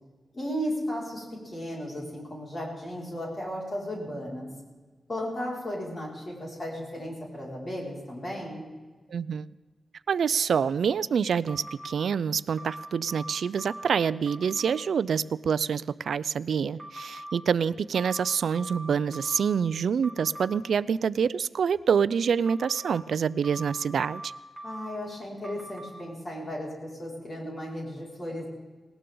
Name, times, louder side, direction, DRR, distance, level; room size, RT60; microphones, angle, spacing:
voice 1, 0.3-4.5 5.1-8.7 24.6-28.5, equal, 35° left, -3 dB, 5.2 m, -35 dB
voice 2, 9.1-9.5 10.1-24.3, right 7 dB, 80° right, 17 dB, 0.4 m, -26 dB
sound 1, 11.5-12.0 12.6-13.9 14.3-14.7 16.8-17.3 17.9-19.6 20.0-20.5 22.5-22.9 23.4-25.0 25.4-25.9, right 1 dB, 20° right, 2.4 m, -42 dB
19.0 x 19.0 x 3.8 m, 1.4 s
wide cardioid pair, 175°, 0 cm